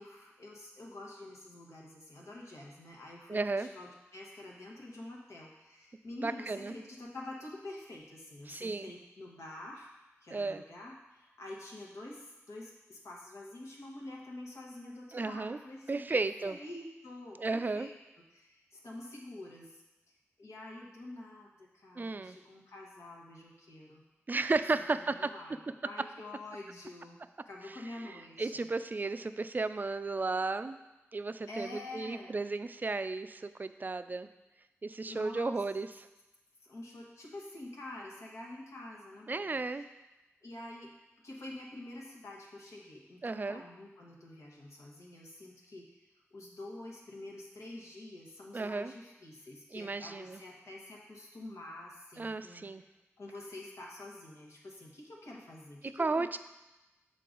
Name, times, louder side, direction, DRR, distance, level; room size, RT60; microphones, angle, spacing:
voice 1, 0.0-9.9 10.2-18.0 18.3-19.8 20.4-24.0 24.7-28.7 31.5-32.3 35.1-35.6 36.6-39.6 40.4-40.9 41.2-52.9 53.2-56.4, left 1 dB, 80° left, -3 dB, 1.2 m, -47 dB
voice 2, 3.3-3.7 6.2-6.7 8.5-8.9 10.3-10.6 15.1-15.6 15.9-16.6 17.4-17.9 22.0-22.4 24.3-25.3 28.0-30.8 31.1-34.3 34.8-35.9 39.3-39.9 43.2-43.6 48.5-48.9 49.7-50.4 52.2-52.8 56.0-56.4, right 3 dB, 35° right, 11 dB, 0.3 m, -34 dB
6.6 x 3.8 x 3.8 m, 1.0 s
cardioid pair, 45°, 5 cm